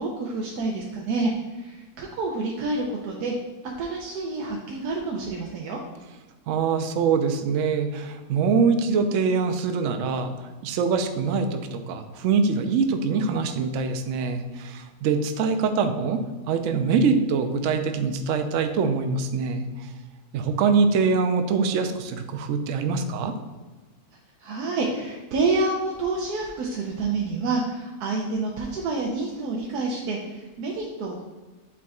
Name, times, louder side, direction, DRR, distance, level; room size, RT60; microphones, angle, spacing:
voice 1, 0.0-3.3 3.8-5.8 24.4-31.2, right 3 dB, 85° right, -1 dB, 1.2 m, -28 dB
voice 2, 6.5-10.3 10.6-19.9 20.3-23.3, right 5 dB, 65° right, 7 dB, 0.8 m, -24 dB
8.4 x 4.7 x 2.4 m, 1.2 s
omnidirectional pair, 1.7 m